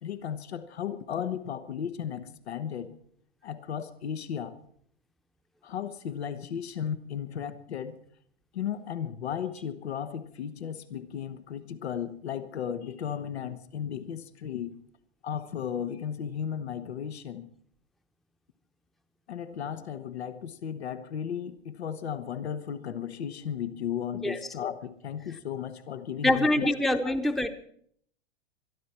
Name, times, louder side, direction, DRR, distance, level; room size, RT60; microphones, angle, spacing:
voice 1, 0.0-2.9 3.4-4.6 5.6-8.0 8.5-14.8 15.2-17.5 19.3-26.7 27.0-27.2, left 8 dB, 75° left, 12 dB, 1.2 m, -35 dB
voice 2, 26.2-27.5, left 1 dB, ahead, 8 dB, 0.9 m, -24 dB
23.0 x 12.5 x 4.3 m, 0.63 s
hypercardioid pair, 105°, 32 cm